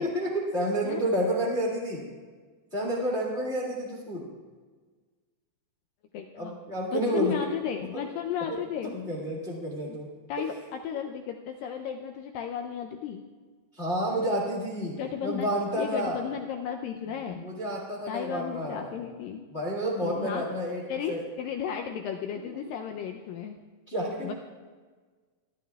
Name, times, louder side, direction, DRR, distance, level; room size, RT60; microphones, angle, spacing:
voice 1, 0.0-2.0 2.7-4.3 6.3-7.3 7.7-7.9 8.5-8.6 8.9-10.1 13.7-16.2 17.3-18.9 19.5-20.8 21.1-21.2 22.5-22.6 23.9-24.3, right 1 dB, 40° left, -3 dB, 0.9 m, -30 dB
voice 2, 6.1-6.5 6.9-9.0 9.8-10.0 10.3-13.3 14.9-15.5 15.8-17.5 18.1-19.4 20.0-20.5 20.9-23.6 24.2-24.3, left 8 dB, 85° left, 4 dB, 2.0 m, -34 dB
23.5 x 11.5 x 2.3 m, 1.4 s
omnidirectional pair, 4.6 m